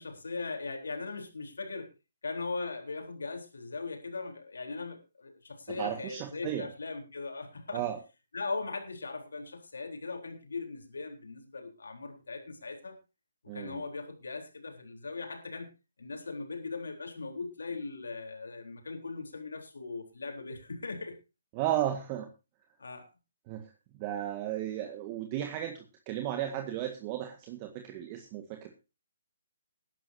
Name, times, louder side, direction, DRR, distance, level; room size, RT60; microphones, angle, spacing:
voice 1, 0.0-1.9 2.2-7.8 8.3-13.0 13.5-15.7 16.0-21.1 22.8-23.1, left 3 dB, 75° left, 3 dB, 3.8 m, -39 dB
voice 2, 5.8-6.7 7.7-8.0 13.5-13.8 21.5-22.3 23.5-23.7 24.0-28.7, right 12 dB, 30° right, 5 dB, 1.7 m, -34 dB
20.0 x 10.5 x 2.8 m, 0.28 s
figure-of-eight pair, 140°, 0 cm